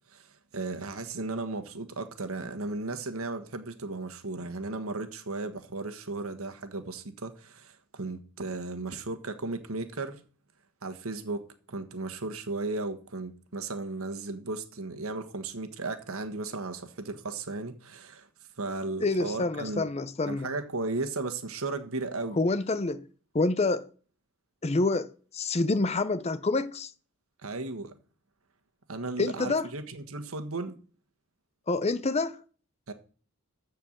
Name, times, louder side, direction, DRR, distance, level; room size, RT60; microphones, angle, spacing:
voice 1, 0.1-10.2 10.8-11.4 11.7-18.3 18.6-19.9 20.3-22.4 27.4-27.9 28.9-30.8 32.9-33.0, right 3 dB, 70° right, 1.4 m, -35 dB
voice 2, 19.0-20.5 22.4-23.1 23.3-23.9 24.6-26.9 29.2-29.7 31.7-32.4, left 3 dB, 30° left, 0.6 m, -27 dB
14.0 x 4.6 x 7.3 m
head